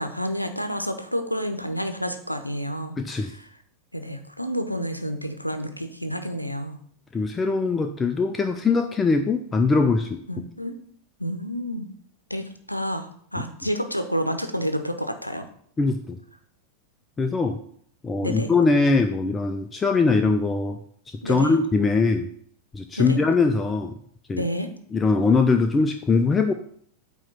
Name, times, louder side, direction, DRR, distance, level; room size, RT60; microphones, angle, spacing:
voice 1, 0.0-2.9 3.2-3.5 3.9-6.8 10.3-10.7 11.2-11.9 12.3-15.5 18.2-18.5 21.2-21.6 23.0-23.2 24.4-24.7, equal, 90° left, 7 dB, 0.7 m, -29 dB
voice 2, 3.0-3.3 7.1-10.2 15.8-16.2 17.2-17.6 18.0-20.8 21.1-22.3 22.7-23.9 24.3-24.4 24.9-26.5, left 4 dB, 15° left, 6 dB, 0.5 m, -21 dB
8.8 x 3.0 x 5.8 m, 0.62 s
figure-of-eight pair, 90°, 0 cm